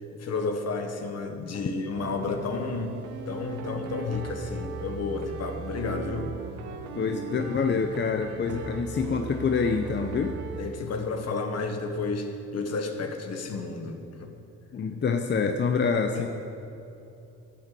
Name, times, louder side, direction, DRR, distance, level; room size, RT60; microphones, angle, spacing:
voice 1, 0.1-6.3 10.6-14.3 16.1-16.3, left 4 dB, 55° left, 5 dB, 1.3 m, -32 dB
sound 1, 2.0-10.7, right 5 dB, 85° right, 0.9 m, -38 dB
voice 2, 6.9-10.3 14.7-16.3, left 5 dB, 35° left, 5 dB, 0.6 m, -26 dB
12.0 x 6.0 x 7.6 m, 2.8 s
cardioid pair, 90°, 30 cm